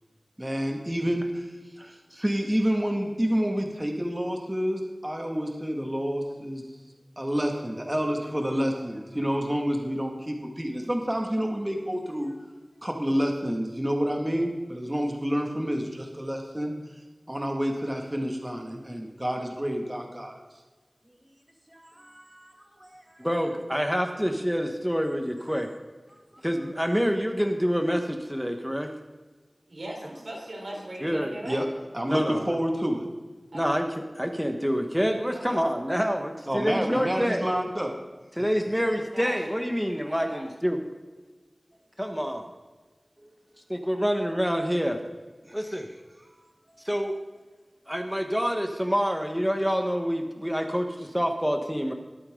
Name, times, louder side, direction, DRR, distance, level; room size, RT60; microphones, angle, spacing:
voice 1, 0.4-6.8 7.2-12.5 12.8-20.6 21.1-21.4 21.7-23.3 26.1-26.5 31.5-31.7 31.9-33.1 36.5-38.0 43.2-43.3 45.4-45.6 46.2-46.9, equal, 20° right, 2 dB, 2.2 m, -29 dB
voice 2, 23.2-25.7 26.4-28.9 31.0-31.3 32.1-32.5 33.5-33.8 34.2-37.4 38.4-40.8 42.0-42.5 43.7-45.0 45.5-45.9 46.8-47.1 47.9-51.9, equal, ahead, 4 dB, 1.4 m, -27 dB
voice 3, 29.7-31.6 33.5-33.8 35.3-35.6 39.1-39.7 40.0-40.5, right 1 dB, 85° right, -2 dB, 4.2 m, -39 dB
21.5 x 8.8 x 3.9 m, 1.3 s
wide cardioid pair, 45°, 0 cm